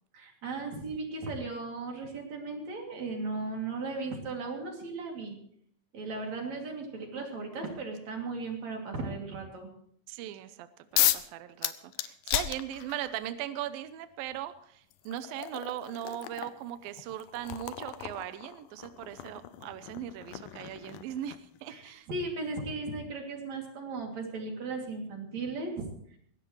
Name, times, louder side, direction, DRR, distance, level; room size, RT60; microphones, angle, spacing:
voice 1, 0.1-5.4 5.9-9.7 21.7-25.9, right 3 dB, 50° right, 1 dB, 3.7 m, -36 dB
voice 2, 10.1-22.1, right 12 dB, 75° right, 11 dB, 2.3 m, -39 dB
sound 1, 11.0-11.3 11.6-13.2 14.3-14.4 14.9-21.6, left 14 dB, 75° left, 2.1 m, -34 dB
20.5 x 17.0 x 3.2 m, 0.65 s
omnidirectional pair, 4.5 m